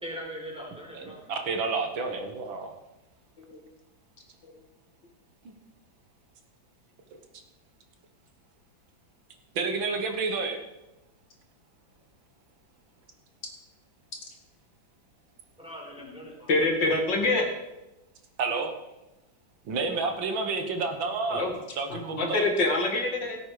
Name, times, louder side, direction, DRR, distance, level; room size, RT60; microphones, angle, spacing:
voice 1, 0.0-1.3 15.6-16.5, equal, 5° right, -3 dB, 4.3 m, -40 dB
voice 2, 0.9-2.7 5.5-5.6 9.6-10.6 16.2-16.3 18.4-18.7 19.7-22.4, right 4 dB, 80° right, 5 dB, 2.2 m, -30 dB
voice 3, 16.5-17.4 21.3-21.5 22.1-23.4, left 2 dB, 65° left, 2 dB, 2.6 m, -25 dB
17.5 x 8.6 x 4.9 m, 0.98 s
omnidirectional pair, 2.1 m